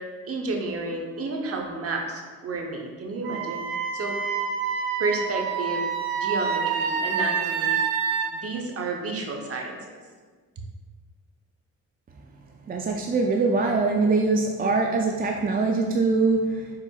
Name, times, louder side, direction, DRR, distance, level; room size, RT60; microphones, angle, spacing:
voice 1, 0.0-3.6 3.9-4.2 5.0-5.8 6.2-7.8 8.3-9.8, right 3 dB, 45° right, 1 dB, 0.8 m, -31 dB
Wind instrument woodwind instrument, 3.2-8.3, right 6 dB, 85° right, 0.5 m, -27 dB
voice 2, 12.7-16.7, right 3 dB, 30° right, 2 dB, 0.3 m, -23 dB
4.5 x 4.0 x 2.3 m, 1.5 s
supercardioid pair, 65°, 34 cm